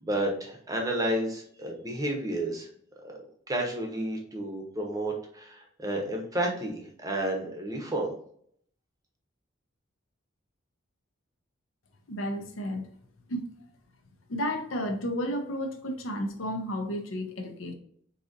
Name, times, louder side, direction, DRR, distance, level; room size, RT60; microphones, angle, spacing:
voice 1, 0.0-2.7 3.0-3.2 3.5-8.1, right 1 dB, 15° right, 1 dB, 0.7 m, -31 dB
voice 2, 12.1-12.9 13.3-13.4 14.3-17.7, equal, 75° left, 4 dB, 0.7 m, -32 dB
3.9 x 2.7 x 2.5 m, 0.63 s
head